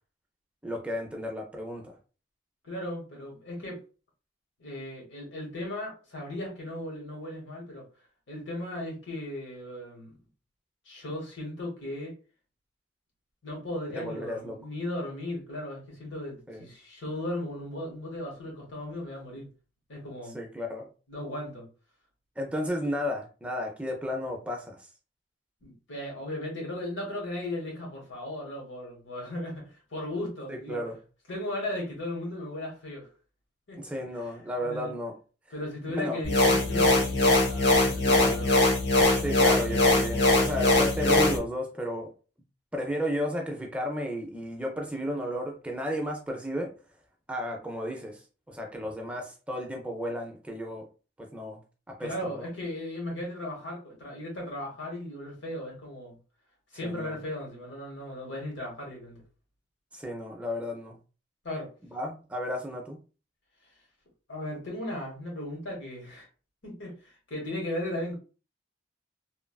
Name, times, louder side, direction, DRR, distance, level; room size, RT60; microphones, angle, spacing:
voice 1, 0.6-1.8 14.0-14.6 16.5-16.6 20.3-20.9 22.4-24.8 30.5-31.0 33.8-35.1 36.0-36.2 38.0-38.4 39.2-42.1 42.7-46.7 47.3-50.8 51.2-51.6 51.9-52.5 56.8-57.2 59.9-61.0 61.9-63.0, equal, 5° right, 0.4 m, -33 dB
voice 2, 2.6-3.8 4.6-7.9 8.3-10.2 10.8-12.2 13.4-19.5 19.9-20.4 21.1-21.7 25.6-30.8 31.3-33.1 33.7-33.8 34.1-34.2 34.6-34.9 35.5-38.5 52.0-56.1 56.7-59.2 61.4-61.7 64.3-66.3 66.6-68.2, left 1 dB, 80° left, 1.2 m, -36 dB
sound 1, 36.2-41.4, left 2 dB, 60° left, 0.7 m, -22 dB
3.0 x 2.3 x 2.2 m
head